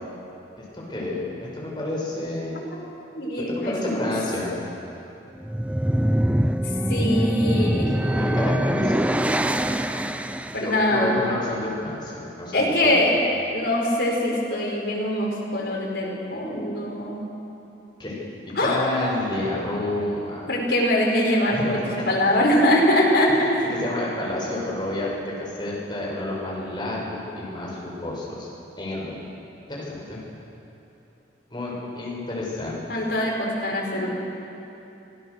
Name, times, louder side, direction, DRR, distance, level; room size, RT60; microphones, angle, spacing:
voice 1, 0.6-2.6 3.5-4.6 8.2-9.1 10.6-13.0 18.0-18.2 18.6-20.4 21.5-21.7 22.0-22.6 23.8-25.1 25.4-28.5 28.8-29.2 29.7-30.2 31.5-32.8, left 2 dB, 25° left, -5 dB, 5.9 m, -30 dB
voice 2, 3.2-4.1 6.9-7.9 10.5-11.2 12.5-13.1 13.5-17.2 18.6-18.8 20.5-21.8 22.1-23.6 32.9-34.1, left 1 dB, 70° left, -3 dB, 5.3 m, -22 dB
sound 1, 5.3-10.8, right 1 dB, 5° right, 0.5 m, -23 dB
25.5 x 16.0 x 6.8 m, 2.9 s
head